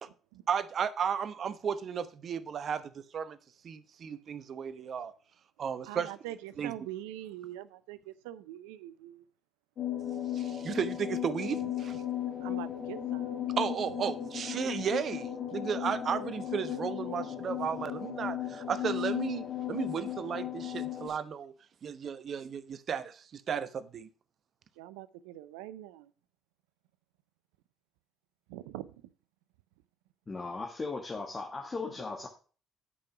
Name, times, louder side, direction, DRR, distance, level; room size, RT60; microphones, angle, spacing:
voice 1, 0.5-3.4 3.6-5.1 5.6-6.1 6.6-6.7 10.3-12.0 13.6-21.5 21.8-24.1, right 7 dB, 55° right, 0.9 m, -34 dB
voice 2, 5.9-9.2 12.4-13.4 24.8-26.1 28.5-28.9, right 14 dB, 85° right, 0.5 m, -43 dB
sound 1, 9.8-21.1, left 11 dB, 60° left, 1.9 m, -36 dB
voice 3, 30.3-32.3, left 3 dB, 30° left, 1.4 m, -37 dB
8.7 x 5.4 x 5.8 m
hypercardioid pair, 55°, 0 cm